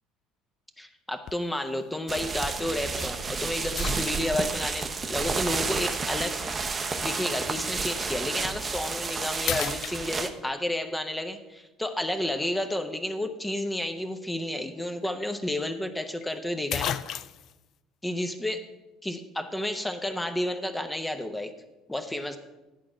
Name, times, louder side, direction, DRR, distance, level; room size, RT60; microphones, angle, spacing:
voice 1, 0.8-6.6 7.0-17.0 18.0-18.6 19.0-21.5 21.9-22.4, left 1 dB, 10° left, 7 dB, 0.8 m, -31 dB
sound 1, 1.3-1.6 2.2-2.3 3.8-4.6 6.1-6.2 8.3-8.5 9.0-9.1 9.4-10.5 14.6-14.7 15.0-15.1 16.2-16.3 16.7-17.6, left 10 dB, 50° left, 0.3 m, -33 dB
sound 2, 2.1-10.3, right 4 dB, 30° right, 0.8 m, -31 dB
10.5 x 4.9 x 7.1 m, 1.0 s
figure-of-eight pair, 60°, 0 cm